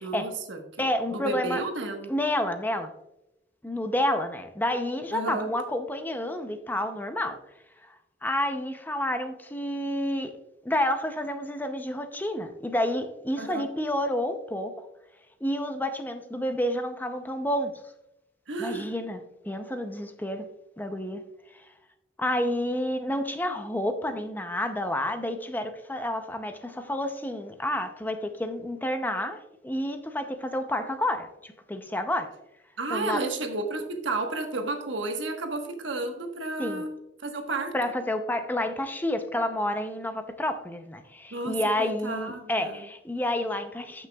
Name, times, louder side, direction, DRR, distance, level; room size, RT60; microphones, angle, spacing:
voice 1, 0.0-0.6 1.1-2.1 5.1-5.5 13.4-13.7 18.5-18.9 32.8-37.7 41.3-42.8, right 2 dB, 80° right, 4 dB, 1.2 m, -32 dB
voice 2, 0.8-1.6 2.1-2.9 3.6-7.4 7.8-8.0 8.2-10.3 10.6-14.9 15.4-17.7 18.6-20.4 20.8-21.2 21.5-21.6 22.2-32.3 32.9-33.2 36.6-36.8 37.7-44.1, left 1 dB, 10° left, 7 dB, 0.5 m, -29 dB
13.5 x 6.1 x 2.3 m, 0.88 s
head